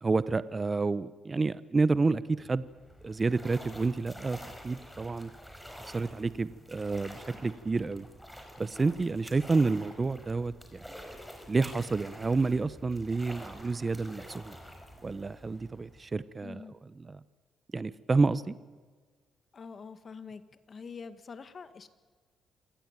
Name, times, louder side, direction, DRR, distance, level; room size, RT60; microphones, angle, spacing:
voice 1, 0.0-2.7 3.0-5.3 5.8-8.1 8.6-11.0 11.5-14.6 15.0-17.2 17.7-18.5, right 3 dB, 25° right, 16 dB, 0.9 m, -29 dB
sound 1, 2.6-16.2, equal, 5° left, 5.0 m, -48 dB
voice 2, 16.4-16.7 19.5-20.4 20.7-21.9, left 5 dB, 40° left, 11 dB, 2.0 m, -45 dB
27.0 x 18.0 x 9.1 m, 1.4 s
cardioid pair, 90°, 0 cm